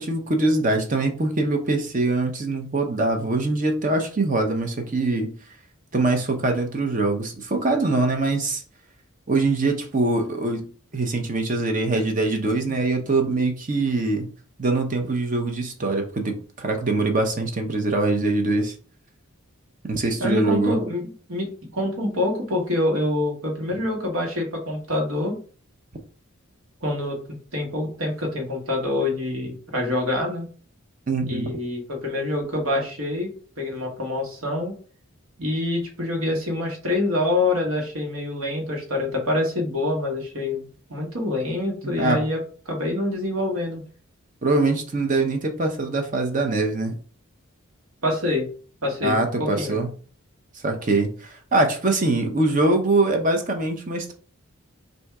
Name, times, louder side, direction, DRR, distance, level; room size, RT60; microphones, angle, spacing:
voice 1, 0.0-5.3 5.9-8.6 9.3-10.7 10.9-14.3 14.6-18.7 19.8-20.8 31.1-31.6 41.8-42.2 44.4-46.9 49.0-49.9 50.6-54.1, right 2 dB, 35° right, 4 dB, 0.6 m, -23 dB
voice 2, 20.2-25.3 26.8-27.2 27.5-30.5 31.2-33.3 33.6-34.7 35.4-42.4 42.7-43.8 48.0-48.5 48.8-49.8, left 2 dB, 75° right, 0 dB, 1.4 m, -26 dB
3.4 x 2.6 x 4.6 m, 0.41 s
head